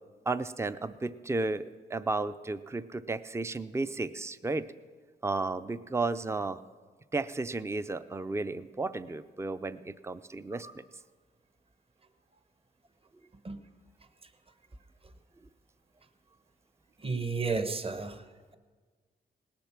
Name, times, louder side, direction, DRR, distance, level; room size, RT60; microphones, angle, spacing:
voice 1, 0.3-4.7 5.2-6.6 7.1-10.8, right 3 dB, 15° right, 13 dB, 0.5 m, -33 dB
voice 2, 17.0-18.2, right 4 dB, 30° right, 10 dB, 1.0 m, -32 dB
18.5 x 10.5 x 5.9 m, 1.5 s
cardioid pair, 80°, 18 cm